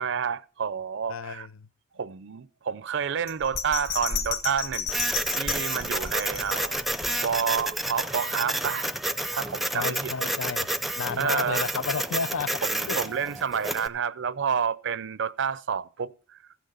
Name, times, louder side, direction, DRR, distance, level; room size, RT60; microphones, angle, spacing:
voice 1, 0.0-1.5 2.0-5.1 5.4-6.8 7.2-8.9 9.3-10.1 11.2-11.7 12.7-16.1, right 7 dB, 60° right, 0.5 m, -29 dB
voice 2, 1.1-1.7 9.7-10.7 11.0-13.0, left 5 dB, 80° left, 0.5 m, -32 dB
Bell, 3.3-7.6 8.0-8.1, left 6 dB, 50° left, 1.3 m, -33 dB
Printer, 4.9-13.9, right 1 dB, ahead, 0.4 m, -30 dB
15.0 x 5.9 x 6.6 m
head